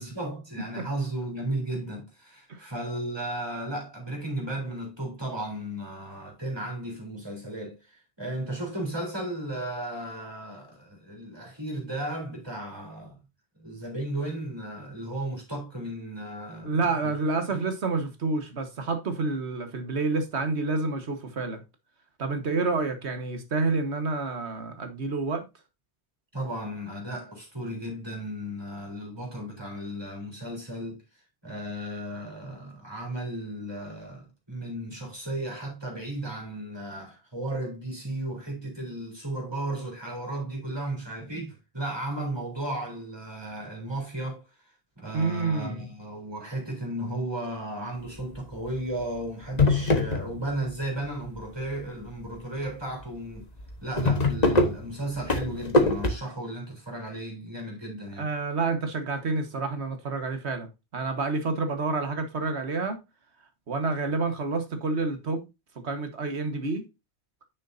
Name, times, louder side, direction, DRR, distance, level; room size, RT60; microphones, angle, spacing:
voice 1, 0.0-13.2 13.6-16.8 17.0-17.1 17.5-17.6 26.3-31.0 31.4-44.4 45.0-53.5 53.8-58.3, right 1 dB, 20° right, 3.7 m, -35 dB
voice 2, 16.6-21.6 22.2-25.5 45.1-45.9 58.2-63.0 63.7-65.4 65.8-66.9, right 3 dB, 80° right, 1.7 m, -29 dB
sound 1, 48.2-48.6 49.0-49.1 49.4-50.7 51.0-51.7 52.2-52.4 52.6-52.7 53.0-53.1 53.4-56.1, left 2 dB, 40° left, 1.3 m, -23 dB
9.9 x 6.3 x 2.7 m
omnidirectional pair, 1.1 m